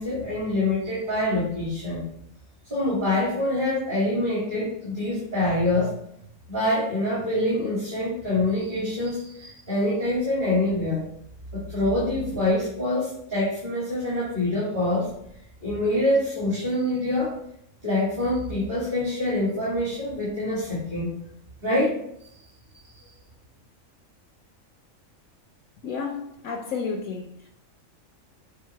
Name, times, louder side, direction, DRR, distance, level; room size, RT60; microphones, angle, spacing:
voice 1, 0.0-2.0 2.7-5.9 6.5-11.0 11.5-15.1 15.6-17.3 17.8-21.1 21.6-22.0, left 1 dB, 35° right, -8 dB, 2.4 m, -25 dB
voice 2, 25.8-27.5, left 5 dB, 85° left, -1 dB, 1.2 m, -31 dB
6.7 x 3.4 x 4.6 m, 0.75 s
omnidirectional pair, 1.4 m